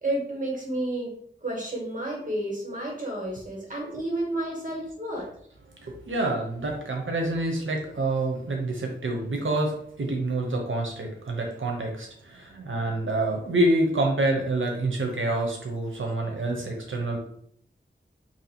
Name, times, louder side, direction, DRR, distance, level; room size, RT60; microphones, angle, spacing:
voice 1, 0.0-5.3, right 1 dB, 40° right, -2 dB, 1.5 m, -31 dB
voice 2, 5.8-17.2, right 2 dB, 90° right, 1 dB, 0.7 m, -27 dB
3.0 x 2.8 x 4.2 m, 0.65 s
wide cardioid pair, 60°, 20 cm